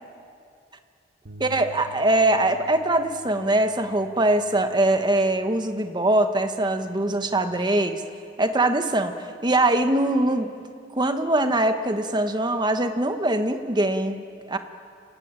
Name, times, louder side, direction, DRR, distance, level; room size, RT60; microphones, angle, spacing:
sound 1, 1.3-7.5, right 5 dB, 60° right, 1.5 m, -49 dB
voice 1, 1.4-8.0 8.4-10.5 10.9-14.6, right 1 dB, 25° right, 7 dB, 1.3 m, -22 dB
28.5 x 16.5 x 9.7 m, 2.4 s
head